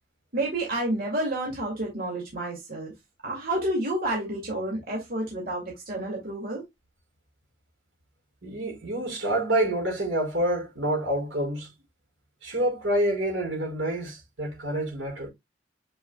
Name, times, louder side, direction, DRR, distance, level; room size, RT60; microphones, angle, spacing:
voice 1, 0.3-2.9 3.2-6.6, right 1 dB, 50° right, 2.4 m, -30 dB
voice 2, 8.4-11.7 12.4-15.3, right 1 dB, 80° right, 4.9 m, -27 dB
7.9 x 5.5 x 2.3 m
head